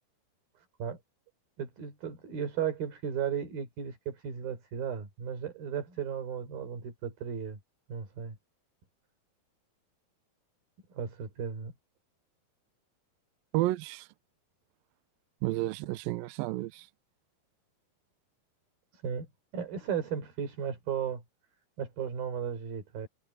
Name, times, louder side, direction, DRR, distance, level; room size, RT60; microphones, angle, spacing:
voice 1, 1.6-7.6 7.9-8.4 10.9-11.7 19.0-19.3 19.5-21.2 21.8-23.1, right 8 dB, 65° right, 6.2 m, -35 dB
voice 2, 13.5-14.1 15.4-16.9, right 17 dB, 80° right, 2.2 m, -31 dB
omnidirectional pair, 4.6 m